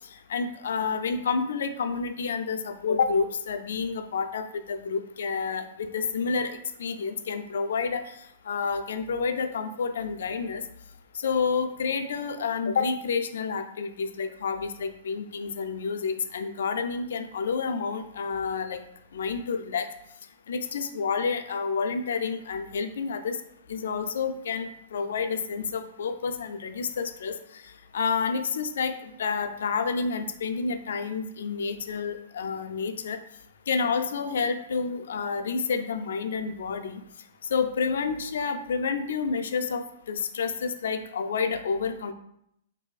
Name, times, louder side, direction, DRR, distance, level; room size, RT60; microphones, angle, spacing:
voice 1, 0.3-8.1 8.5-10.6 11.2-18.8 19.1-19.9 20.5-23.4 23.7-27.4 27.9-33.2 33.7-37.0 37.5-42.1, left 5 dB, 75° left, 8 dB, 0.3 m, -29 dB
3.8 x 2.6 x 2.3 m, 0.74 s
hypercardioid pair, 125°, 0 cm